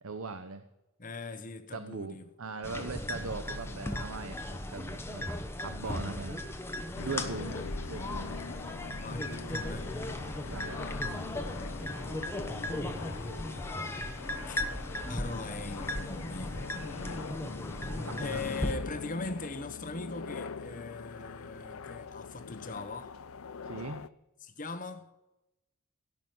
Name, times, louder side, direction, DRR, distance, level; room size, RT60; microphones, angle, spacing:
voice 1, 0.0-0.6 1.7-5.3 5.6-6.4 7.0-8.4 10.4-10.8 18.1-18.4 23.6-24.1, right 4 dB, 75° right, 0.9 m, -40 dB
voice 2, 1.0-2.3 5.8-6.2 7.0-7.7 9.0-9.9 13.8-14.6 15.1-16.7 18.2-23.1 24.4-25.1, left 3 dB, 40° left, 1.2 m, -41 dB
sound 1, 2.6-18.7, left 1 dB, 10° left, 1.0 m, -37 dB
sound 2, 7.0-24.1, left 5 dB, 75° left, 0.5 m, -43 dB
17.0 x 6.3 x 9.1 m
head